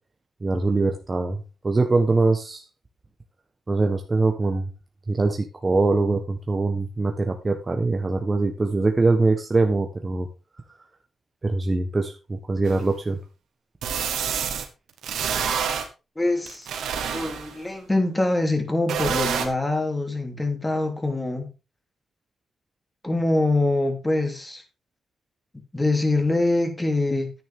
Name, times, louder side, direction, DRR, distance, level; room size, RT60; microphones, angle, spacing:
voice 1, 0.4-2.7 3.7-4.7 5.1-10.3 11.4-13.2, right 3 dB, 25° right, 4 dB, 1.2 m, -23 dB
sound 1, 12.7-12.8 13.8-14.7 15.0-15.9 16.5-17.6 18.9-19.5, right 7 dB, 85° right, 1.8 m, -27 dB
voice 2, 16.1-21.5 23.0-24.6 25.7-27.3, left 2 dB, 15° left, 4 dB, 3.2 m, -24 dB
10.0 x 9.3 x 3.7 m, 0.30 s
cardioid pair, 85°, 0 cm